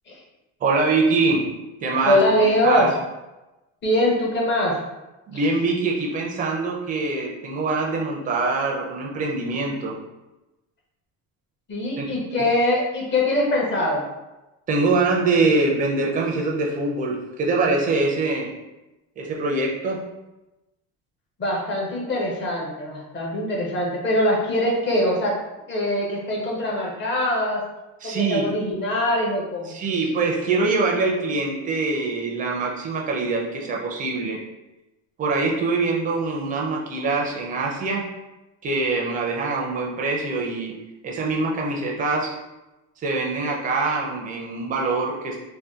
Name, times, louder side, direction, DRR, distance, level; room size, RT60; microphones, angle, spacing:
voice 1, 0.6-1.4 1.8-2.9 5.3-10.0 12.0-12.1 14.7-18.5 19.2-20.0 28.0-28.5 29.6-34.4 35.2-38.1 38.6-40.8 41.0-42.3 43.0-45.4, right 3 dB, 25° right, -2 dB, 0.4 m, -24 dB
voice 2, 2.0-2.9 3.8-4.8 11.7-14.0 21.4-25.3 25.7-27.6 28.0-29.7, left 1 dB, 30° left, -2 dB, 0.7 m, -22 dB
2.7 x 2.2 x 3.5 m, 1.0 s
cardioid pair, 165°, 36 cm